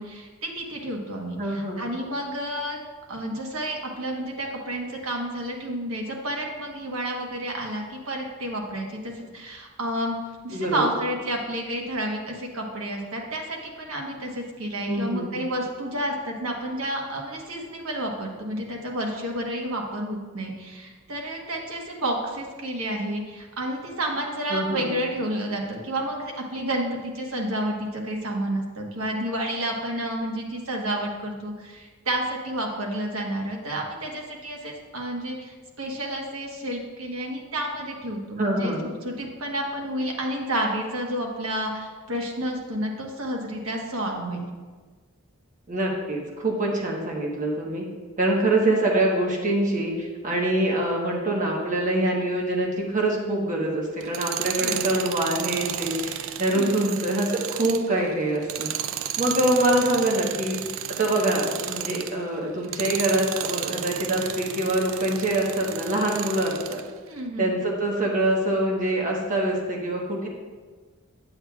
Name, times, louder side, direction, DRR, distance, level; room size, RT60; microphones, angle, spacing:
voice 1, 0.0-2.8 3.1-10.2 10.4-38.7 39.0-44.5 54.6-55.1 56.6-56.8 67.1-67.5, right 1 dB, 80° right, 0 dB, 1.2 m, -30 dB
voice 2, 1.4-1.9 10.5-10.8 14.9-15.4 24.5-24.9 38.4-38.9 45.7-47.8 48.2-58.7 59.2-60.6 61.0-66.8 67.4-70.3, right 1 dB, 40° right, -2 dB, 1.1 m, -25 dB
Tools, 54.0-62.2 62.6-66.9, right 11 dB, 65° right, 0.3 m, -33 dB
8.4 x 7.9 x 2.3 m, 1.4 s
head